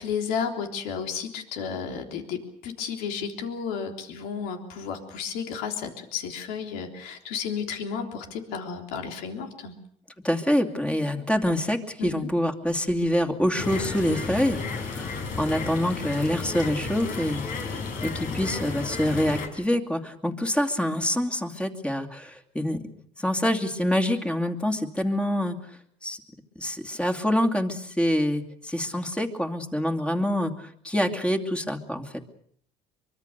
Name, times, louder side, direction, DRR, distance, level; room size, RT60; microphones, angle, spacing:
voice 1, 0.0-9.8 12.0-12.3, left 6 dB, 85° left, 4 dB, 3.5 m, -32 dB
voice 2, 10.2-22.8 23.2-25.6 26.0-26.2 26.6-32.0, left 1 dB, 5° left, 5 dB, 2.7 m, -26 dB
sound 1, 13.6-19.5, left 4 dB, 65° left, 4.9 m, -33 dB
24.0 x 24.0 x 6.8 m, 0.63 s
cardioid pair, 100°, 15 cm